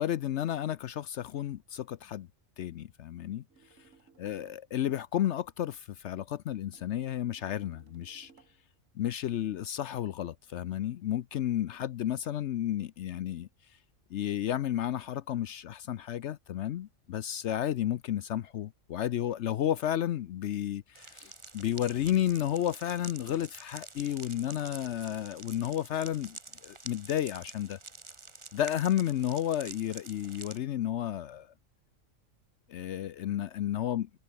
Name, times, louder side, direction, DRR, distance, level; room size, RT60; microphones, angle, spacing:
voice 1, 0.0-2.3 2.6-3.4 4.2-8.3 9.0-13.5 14.1-27.8 28.5-31.5 32.7-34.2, left 11 dB, 65° left, 0.9 m, -32 dB
sound 1, 3.5-4.7 6.7-8.7, right 5 dB, 80° right, 2.2 m, -62 dB
sound 2, 20.9-30.6, right 3 dB, 25° right, 1.2 m, -48 dB
omnidirectional pair, 1.3 m